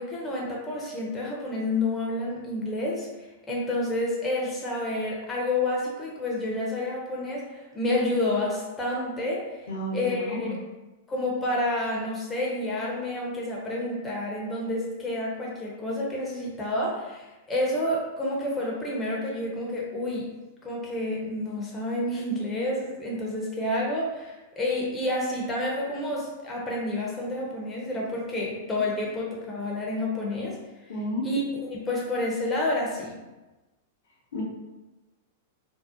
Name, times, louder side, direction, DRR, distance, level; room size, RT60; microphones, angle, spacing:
voice 1, 0.0-3.1 3.5-7.4 7.7-9.6 9.9-10.6 11.1-20.3 20.6-30.6 31.2-31.4 31.7-33.2, left 1 dB, 15° left, -4 dB, 0.5 m, -29 dB
voice 2, 9.7-10.5 30.9-31.3 34.3-34.4, left 1 dB, 65° left, -3 dB, 0.7 m, -31 dB
2.6 x 2.0 x 2.4 m, 1.1 s
hypercardioid pair, 100°, 0 cm